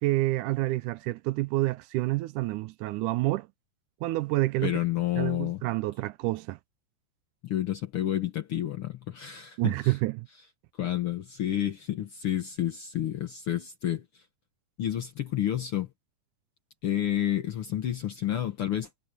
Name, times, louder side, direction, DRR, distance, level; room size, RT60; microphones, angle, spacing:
voice 1, 0.0-3.5 4.0-4.7 5.2-6.6 9.6-10.3, right 19 dB, 80° right, 2.0 m, -28 dB
voice 2, 4.6-5.6 7.4-10.0 10.8-14.0 14.8-15.9 16.8-18.9, left 12 dB, 65° left, 1.5 m, -30 dB
omnidirectional pair, 3.8 m